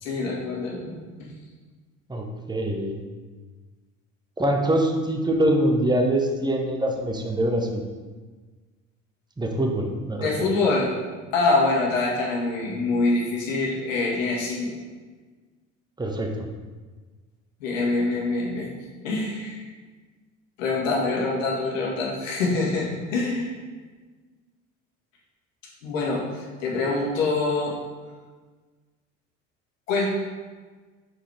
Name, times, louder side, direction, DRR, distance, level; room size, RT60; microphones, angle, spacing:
voice 1, 0.0-1.3 10.2-10.9 11.3-14.8 17.6-18.7 19.0-19.6 20.6-23.5 25.8-27.7 29.9-30.1, left 3 dB, 85° left, -3 dB, 1.7 m, -25 dB
voice 2, 2.1-3.0 4.4-7.8 9.4-10.5 16.0-16.3, right 1 dB, 10° right, 2 dB, 1.0 m, -24 dB
6.4 x 5.4 x 3.4 m, 1.4 s
hypercardioid pair, 65°, 38 cm